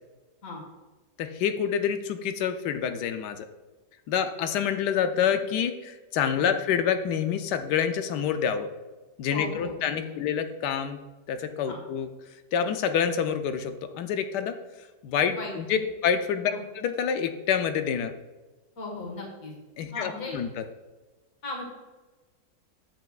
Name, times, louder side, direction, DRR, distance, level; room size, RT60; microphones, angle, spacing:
voice 1, 1.2-3.5 4.1-8.7 9.2-11.0 11.3-12.1 12.5-14.6 15.0-18.1 19.8-20.6, left 8 dB, 75° left, 8 dB, 1.2 m, -27 dB
voice 2, 9.3-10.2 11.7-11.8 15.3-15.8 16.5-16.6 18.8-19.5 19.9-20.4 21.4-21.6, left 2 dB, 50° left, 0 dB, 2.0 m, -37 dB
9.2 x 7.8 x 2.4 m, 1.2 s
omnidirectional pair, 1.9 m